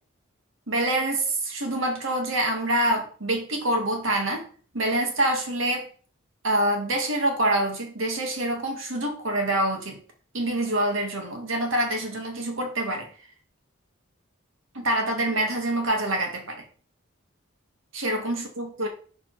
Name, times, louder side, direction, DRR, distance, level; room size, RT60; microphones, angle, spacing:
voice 1, 0.7-4.4 4.7-5.9 6.4-10.0 10.3-13.1 14.7-16.6 17.9-18.9, right 1 dB, 75° right, 3 dB, 1.9 m, -26 dB
7.0 x 4.3 x 4.6 m, 0.43 s
head